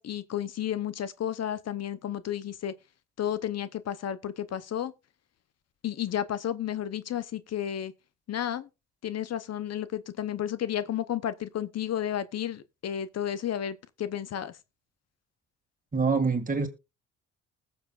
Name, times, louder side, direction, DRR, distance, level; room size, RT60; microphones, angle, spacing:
voice 1, 0.0-2.7 3.2-4.9 5.8-7.9 8.3-8.7 9.0-14.5, left 10 dB, 55° left, 0.8 m, -32 dB
voice 2, 15.9-16.7, right 4 dB, 25° right, 2.1 m, -25 dB
20.0 x 7.1 x 2.4 m
cardioid pair, 90°, 30 cm